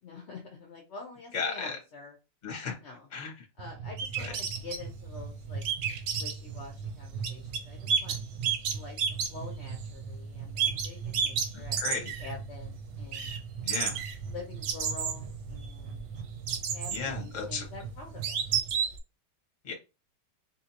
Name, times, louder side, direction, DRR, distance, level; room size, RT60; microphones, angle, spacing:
voice 1, 0.0-2.1 2.8-3.1 3.6-5.6 6.1-8.2 8.7-9.0 9.3-13.3 13.8-13.9 14.3-16.0 16.7-18.4, left 4 dB, 65° left, 0.7 m, -46 dB
voice 2, 1.3-1.7 2.4-2.7 3.1-3.3 4.2-4.3 11.5-12.1 13.6-14.0 16.9-17.7 19.6-19.7, left 5 dB, 35° left, 0.9 m, -34 dB
sound 1, 3.6-18.7, right 5 dB, 70° right, 1.0 m, -41 dB
sound 2, 4.0-4.8 5.6-6.3 7.2-7.6 7.9-9.9 10.6-12.3 12.6-12.7 13.1-13.4 13.7-16.0 16.5-17.1 17.6-17.7 18.2-19.0, right 7 dB, 90° right, 1.4 m, -30 dB
3.8 x 2.7 x 2.8 m
omnidirectional pair, 1.9 m